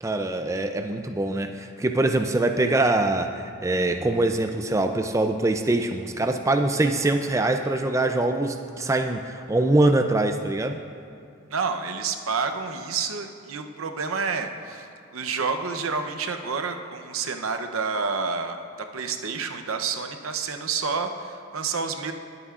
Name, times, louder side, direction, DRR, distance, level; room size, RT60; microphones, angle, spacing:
voice 1, 0.0-10.8, right 2 dB, 15° right, 6 dB, 0.4 m, -23 dB
voice 2, 11.5-22.1, right 5 dB, 85° right, 6 dB, 0.7 m, -29 dB
20.0 x 8.9 x 2.5 m, 2.4 s
head